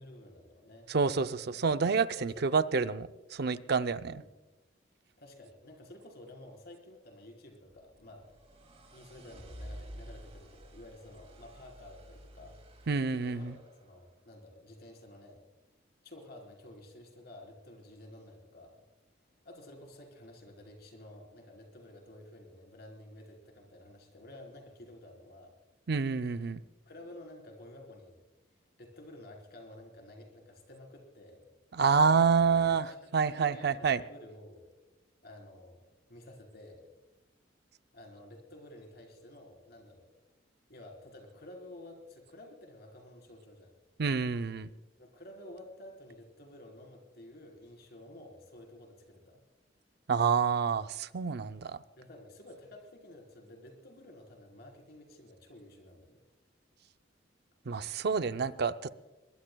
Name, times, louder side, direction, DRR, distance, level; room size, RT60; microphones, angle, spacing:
voice 1, 0.0-0.9 2.1-2.5 4.2-4.3 5.2-8.3 8.9-12.6 13.1-15.4 16.0-18.8 19.4-25.5 26.9-28.2 28.8-31.5 32.7-33.0 33.3-33.7 34.0-34.7 35.2-35.8 36.1-36.8 37.9-40.1 40.7-43.7 45.0-49.4 52.0-56.2, left 1 dB, 55° left, 1 dB, 4.0 m, -51 dB
voice 2, 0.9-4.2 12.9-13.5 25.9-26.6 31.7-32.9 33.1-34.0 44.0-44.7 50.1-51.8 57.7-58.9, right 5 dB, 60° right, 11 dB, 0.5 m, -28 dB
sound 1, 7.7-13.8, equal, 35° right, 2.6 m, -50 dB
22.5 x 21.0 x 2.3 m, 1.1 s
head